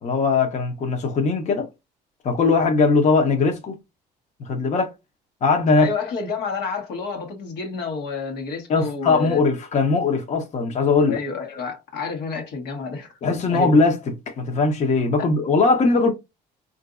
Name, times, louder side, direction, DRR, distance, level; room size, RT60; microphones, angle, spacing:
voice 1, 0.0-1.7 2.2-3.8 4.4-4.9 5.4-5.9 8.7-11.2 13.2-16.1, left 4 dB, 45° left, 0.8 m, -20 dB
voice 2, 5.8-9.4 11.1-13.1 13.5-13.7 15.2-15.3, left 4 dB, 80° left, 1.2 m, -29 dB
3.8 x 2.6 x 2.4 m
cardioid pair, 110°, 17 cm